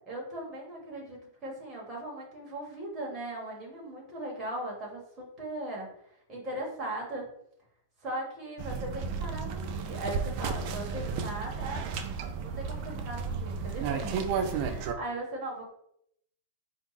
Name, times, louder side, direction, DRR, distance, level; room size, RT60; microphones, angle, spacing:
voice 1, 0.1-5.9 6.3-7.3 8.0-11.9 12.4-15.7, right 1 dB, 15° right, -3 dB, 1.3 m, -38 dB
sound 1, 8.6-14.9, right 5 dB, 35° right, 0.4 m, -33 dB
4.4 x 2.4 x 4.0 m, 0.71 s
supercardioid pair, 170°, 0 cm